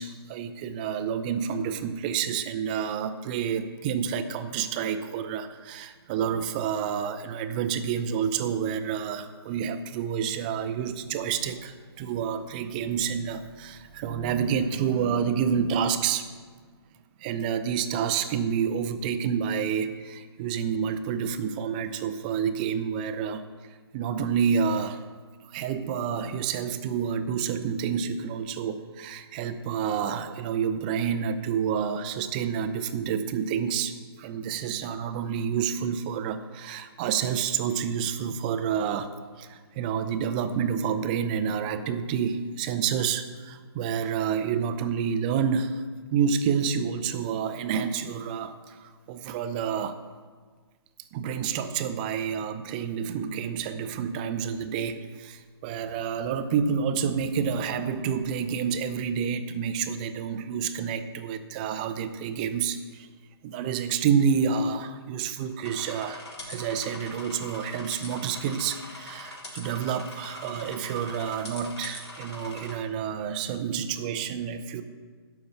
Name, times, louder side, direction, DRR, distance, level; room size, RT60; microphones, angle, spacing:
voice 1, 0.0-16.3 17.2-23.4 23.9-25.0 25.4-45.8 46.1-50.0 51.1-63.1 63.4-74.8, right 7 dB, 20° right, 10 dB, 0.4 m, -29 dB
sound 1, 65.6-72.8, left 2 dB, 85° left, 3.9 m, -42 dB
12.5 x 5.8 x 6.7 m, 1.5 s
hypercardioid pair, 155°, 14 cm